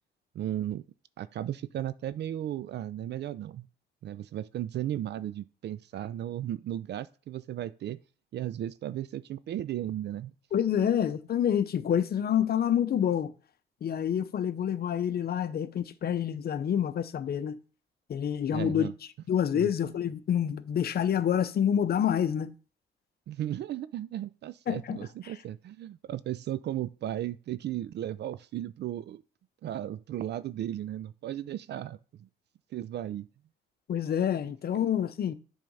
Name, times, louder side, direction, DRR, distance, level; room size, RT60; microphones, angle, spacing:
voice 1, 0.3-0.8 1.2-3.7 4.0-8.0 8.3-10.3 10.7-11.0 18.5-18.9 19.5-19.7 23.3-29.2 29.6-32.3 32.7-33.3 34.7-34.8, right 12 dB, 60° right, 0.4 m, -35 dB
voice 2, 10.5-13.3 13.8-17.6 18.1-18.9 19.3-22.5 24.7-25.0 33.9-35.3, left 9 dB, 50° left, 0.7 m, -27 dB
7.5 x 3.7 x 5.5 m
cardioid pair, 90°, 20 cm